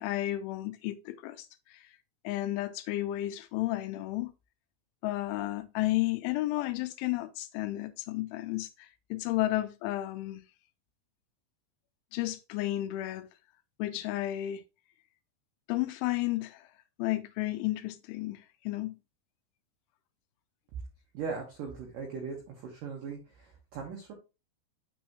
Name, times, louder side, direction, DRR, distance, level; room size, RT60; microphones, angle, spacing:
voice 1, 0.0-1.5 2.2-4.3 5.0-10.4 12.1-13.3 13.8-14.6 15.7-16.6 17.0-18.4 18.7-18.9, left 16 dB, 90° left, 3.1 m, -32 dB
voice 2, 21.1-24.1, right 5 dB, 65° right, 2.3 m, -39 dB
7.2 x 6.4 x 2.9 m
omnidirectional pair, 5.4 m